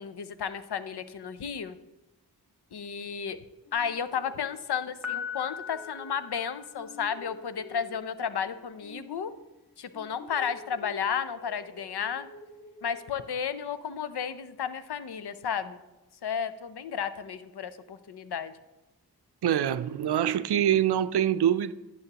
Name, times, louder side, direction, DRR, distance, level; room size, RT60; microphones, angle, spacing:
voice 1, 0.0-1.8 2.7-3.4 3.7-9.3 9.8-12.3 12.8-15.8 16.2-18.5, left 7 dB, 70° left, 0.7 m, -33 dB
sound 1, 3.7-6.4 6.7-9.7 9.9-13.5, left 3 dB, 55° left, 2.2 m, -48 dB
Piano, 5.0-7.1, left 8 dB, 5° right, 1.5 m, -39 dB
voice 2, 19.4-21.7, right 10 dB, 75° right, 0.5 m, -24 dB
11.5 x 8.5 x 2.9 m
cardioid pair, 40°, 40 cm